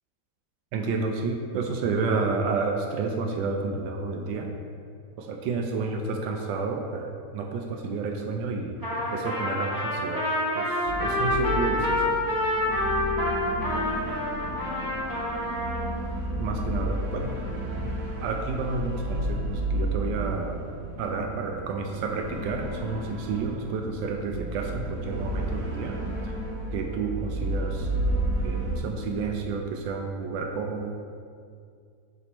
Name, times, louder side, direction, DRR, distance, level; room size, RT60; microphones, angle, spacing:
voice 1, 0.7-4.5 5.2-8.8 9.1-10.3 10.5-12.1 16.3-17.4 18.2-20.6 21.0-26.0 26.7-27.9 28.4-30.9, right 4 dB, 90° right, 2 dB, 1.3 m, -30 dB
Trumpet, 8.8-15.9, left 1 dB, 15° right, 1.2 m, -27 dB
sound 1, 10.8-28.8, right 1 dB, 65° right, 1.4 m, -32 dB
7.6 x 3.0 x 5.9 m, 2.2 s
omnidirectional pair, 2.0 m